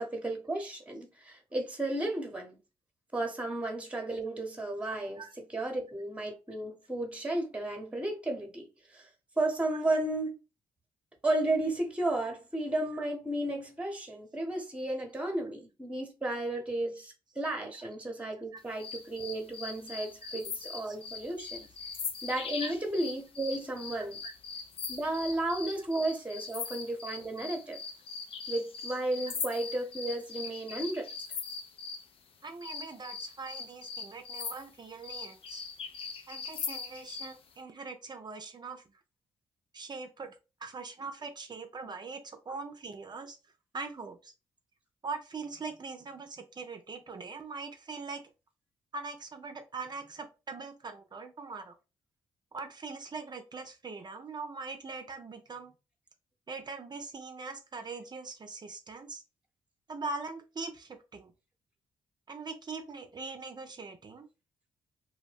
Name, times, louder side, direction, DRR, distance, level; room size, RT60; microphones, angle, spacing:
voice 1, 0.0-2.6 3.1-5.2 5.5-9.1 9.4-10.4 11.2-21.7 22.2-24.3 24.9-27.8 28.5-31.1, right 2 dB, 10° right, 0.9 m, -33 dB
sound 1, 18.8-32.1 32.6-37.4, left 5 dB, 50° left, 0.5 m, -40 dB
voice 2, 32.4-35.6 36.3-38.8 39.7-40.4 40.6-43.4 43.7-44.3 45.0-48.2 48.9-51.8 52.5-55.7 56.5-59.2 59.9-61.3 62.3-64.3, right 4 dB, 35° right, 0.5 m, -42 dB
2.2 x 2.1 x 3.3 m
hypercardioid pair, 45°, 12 cm